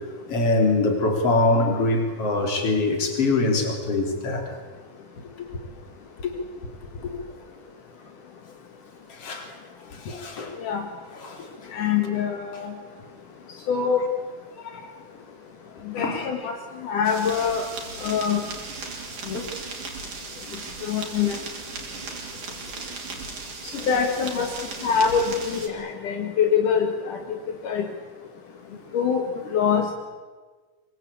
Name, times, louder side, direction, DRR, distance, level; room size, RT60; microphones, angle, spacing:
voice 1, 0.3-4.5 5.4-5.6 6.2-6.3 9.1-9.6 9.9-10.6 11.2-11.7 14.5-14.9 16.0-16.3 19.2-19.4 28.7-28.8, left 2 dB, 45° left, 4 dB, 4.4 m, -24 dB
voice 2, 11.7-12.7 13.7-14.0 15.9-16.5 16.8-17.7 18.0-18.4 20.8-21.4 23.7-24.5 24.8-27.2 27.6-27.8 28.9-29.2 29.5-29.9, left 7 dB, 70° left, 3 dB, 3.3 m, -24 dB
sound 1, 17.0-25.7, right 4 dB, 65° right, 5.0 m, -37 dB
25.5 x 23.0 x 8.6 m, 1.4 s
omnidirectional pair, 3.7 m